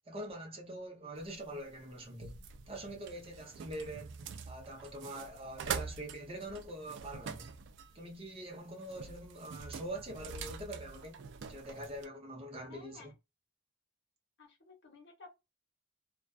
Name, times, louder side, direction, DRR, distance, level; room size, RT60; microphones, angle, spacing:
voice 1, 0.1-2.4 2.7-4.2 4.5-7.5 7.9-13.1, right 1 dB, 30° right, 0.7 m, -44 dB
sound 1, 1.2-12.1, right 6 dB, 60° right, 0.3 m, -45 dB
voice 2, 12.7-13.1 14.4-15.3, left 3 dB, 55° left, 0.9 m, -55 dB
2.3 x 2.2 x 2.3 m
head